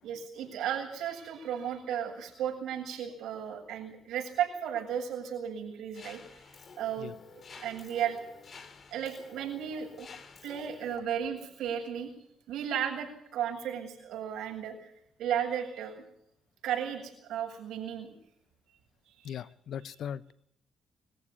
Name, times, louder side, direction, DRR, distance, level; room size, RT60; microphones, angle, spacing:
voice 1, 0.0-6.2 6.8-7.1 7.5-8.2 8.9-10.1 10.4-12.1 12.5-14.9 15.2-16.0 16.6-18.1 19.1-19.4, right 9 dB, 80° right, 7.6 m, -34 dB
Mechanisms, 5.9-11.0, left 5 dB, 45° left, 3.3 m, -51 dB
voice 2, 19.2-20.3, left 9 dB, 70° left, 0.8 m, -39 dB
24.0 x 15.0 x 9.9 m
cardioid pair, 90°, 0 cm